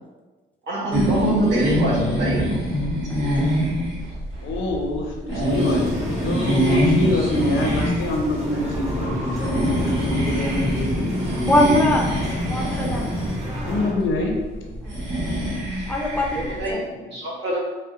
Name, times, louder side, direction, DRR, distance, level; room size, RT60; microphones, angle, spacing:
voice 1, 0.7-2.4 16.3-17.6, right 1 dB, 70° right, -5 dB, 1.1 m, -24 dB
sound 1, 0.9-16.7, equal, 90° right, 1.4 m, -25 dB
voice 2, 4.4-11.7 13.6-14.3 15.2-15.3, left 2 dB, 80° left, 1 dB, 0.7 m, -26 dB
sound 2, 5.4-13.9, equal, 35° right, 1.2 m, -30 dB
voice 3, 11.5-12.1 12.5-13.1 14.8-15.0 15.9-16.8, left 1 dB, 5° left, -1 dB, 0.5 m, -22 dB
4.1 x 2.1 x 2.5 m, 1.3 s
cardioid pair, 90°, 20 cm